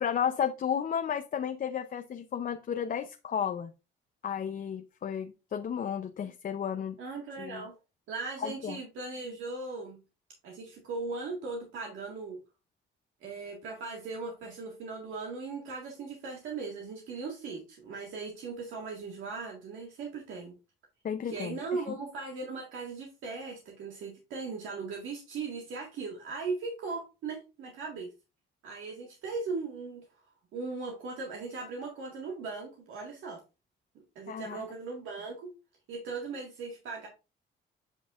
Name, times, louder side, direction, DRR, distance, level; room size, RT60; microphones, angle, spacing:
voice 1, 0.0-3.7 4.2-7.0 7.4-7.6 8.4-8.8 21.0-21.6 21.9-22.0 34.3-34.7, left 8 dB, 45° left, 0.6 m, -33 dB
voice 2, 7.0-7.7 8.1-10.0 10.4-12.4 13.2-20.5 21.2-28.1 28.6-30.2 30.5-33.4 34.2-35.5 35.9-37.1, right 4 dB, 85° right, 1.8 m, -38 dB
8.5 x 5.3 x 2.4 m
cardioid pair, 90°, 20 cm